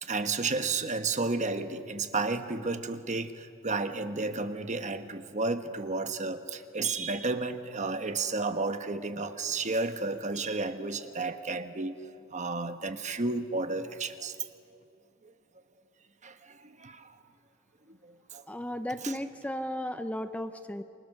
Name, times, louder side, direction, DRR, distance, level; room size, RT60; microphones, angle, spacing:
voice 1, 0.0-12.0 12.3-14.4 15.2-15.3 16.2-17.2 17.9-18.4 19.0-19.2, right 3 dB, 35° right, 9 dB, 1.2 m, -32 dB
voice 2, 18.5-20.8, left 1 dB, 5° left, 9 dB, 0.7 m, -35 dB
28.5 x 25.5 x 6.7 m, 2.5 s
head